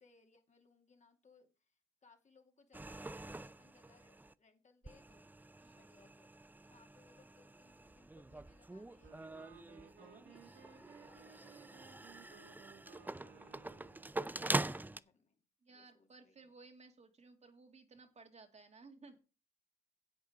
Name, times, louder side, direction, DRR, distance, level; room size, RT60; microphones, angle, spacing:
voice 1, 0.0-5.3 5.7-6.3 6.7-13.3 14.0-15.4 15.7-16.5, left 4 dB, 35° left, 4 dB, 2.5 m, -69 dB
sound 1, 2.7-4.3 4.8-15.0, right 2 dB, 10° right, 0.5 m, -44 dB
Wind instrument woodwind instrument, 9.0-14.2, right 6 dB, 75° right, 2.2 m, -60 dB
voice 2, 15.6-19.2, right 3 dB, 35° right, 5 dB, 2.1 m, -59 dB
10.5 x 8.2 x 5.0 m, 0.32 s
cardioid pair, 90°, 20 cm